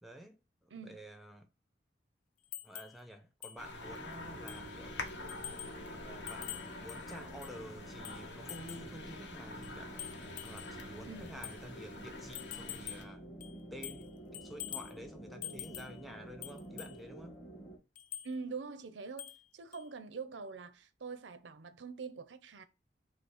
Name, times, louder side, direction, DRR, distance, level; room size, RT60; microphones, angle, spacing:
voice 1, 0.0-1.5 2.6-5.1 5.9-10.1 10.4-13.3 13.7-17.4, equal, ahead, 0.6 m, -50 dB
sound 1, 2.5-3.0 3.4-3.6 4.0-4.1 4.5-4.7 5.3-5.8 6.3-7.6 8.0-8.9 9.6-10.8 11.4-11.6 12.3-13.1 13.4-14.1 14.3-15.0 15.4-16.0 16.4-17.0 18.0-18.3 19.2-19.5 19.7-19.9, left 12 dB, 45° left, 0.3 m, -46 dB
sound 2, 3.6-13.0, left 3 dB, 75° left, 1.0 m, -47 dB
sound 3, 3.8-17.8, right 1 dB, 30° left, 1.6 m, -50 dB
voice 2, 18.2-22.6, right 4 dB, 80° right, 0.6 m, -44 dB
5.0 x 2.1 x 4.8 m
head